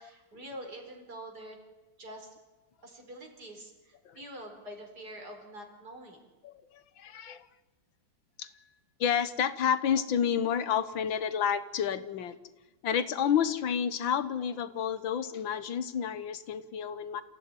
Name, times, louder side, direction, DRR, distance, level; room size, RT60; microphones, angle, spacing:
voice 1, 0.0-1.6 2.0-2.3 2.8-6.3, right 1 dB, 55° right, 3 dB, 5.0 m, -45 dB
voice 2, 6.4-7.5 8.4-8.5 9.0-12.4 12.8-17.2, left 8 dB, 85° left, 13 dB, 1.9 m, -30 dB
27.5 x 15.5 x 9.7 m, 1.2 s
omnidirectional pair, 2.0 m